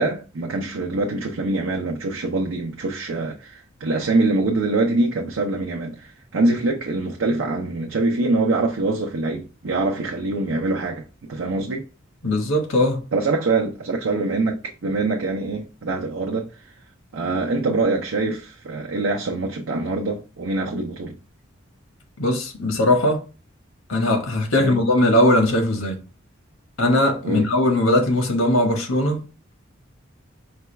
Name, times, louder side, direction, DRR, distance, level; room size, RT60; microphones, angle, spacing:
voice 1, 0.0-11.9 13.1-16.7 17.1-21.2 24.6-24.8 27.2-27.5, right 2 dB, 80° right, 0.6 m, -24 dB
voice 2, 12.2-13.0 22.2-23.2 23.9-26.0 26.8-29.2, left 1 dB, 85° left, 1.1 m, -19 dB
4.9 x 2.3 x 3.1 m
head